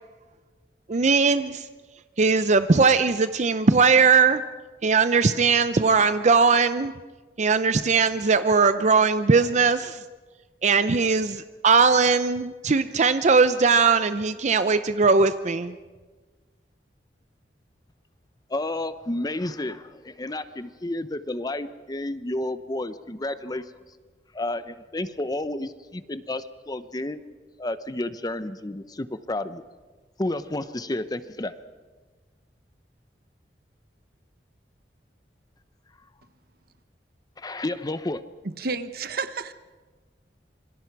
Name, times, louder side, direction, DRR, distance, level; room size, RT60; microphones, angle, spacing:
voice 1, 0.9-1.6 2.2-4.4 4.8-6.9 7.4-10.0 10.6-15.8, right 4 dB, 40° right, 11 dB, 0.6 m, -20 dB
voice 2, 18.5-23.7 24.3-27.2 27.6-29.6 30.2-31.5 37.4-38.2, left 1 dB, 20° left, 12 dB, 0.7 m, -31 dB
voice 3, 38.4-39.5, right 4 dB, 60° right, 11 dB, 1.1 m, -31 dB
26.5 x 24.0 x 4.7 m, 1.3 s
head